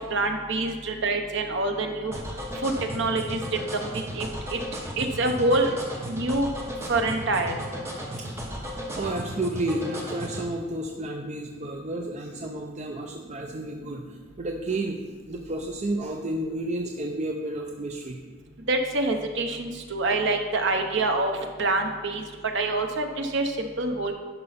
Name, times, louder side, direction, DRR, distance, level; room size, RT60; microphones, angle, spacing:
voice 1, 0.0-2.2 2.6-3.4 3.7-4.6 5.0-5.7 6.1-6.5 6.9-7.6 18.7-22.3 22.5-24.1, right 2 dB, 60° right, 4 dB, 1.0 m, -26 dB
sound 1, 2.1-10.4, equal, 15° right, 1.2 m, -35 dB
voice 2, 8.9-15.0 15.3-18.2, right 1 dB, 35° right, 2 dB, 0.5 m, -31 dB
11.0 x 5.5 x 4.2 m, 1.5 s
head